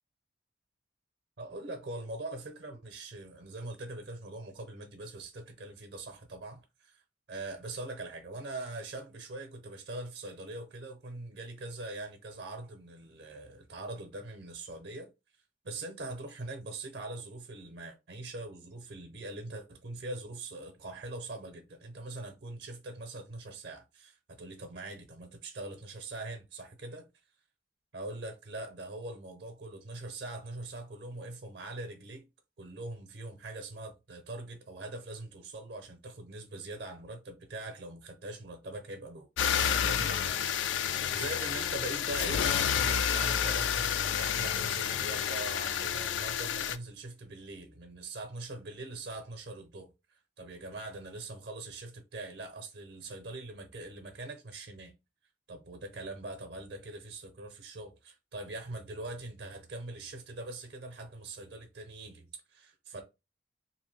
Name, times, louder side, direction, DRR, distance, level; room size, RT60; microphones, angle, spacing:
voice 1, 1.4-7.0 7.3-15.1 15.6-27.1 27.9-32.3 32.6-40.7 41.1-54.9 55.5-63.0, right 2 dB, 60° right, 0.6 m, -42 dB
sound 1, 39.4-46.8, left 8 dB, 80° left, 0.3 m, -30 dB
2.8 x 2.5 x 3.2 m
head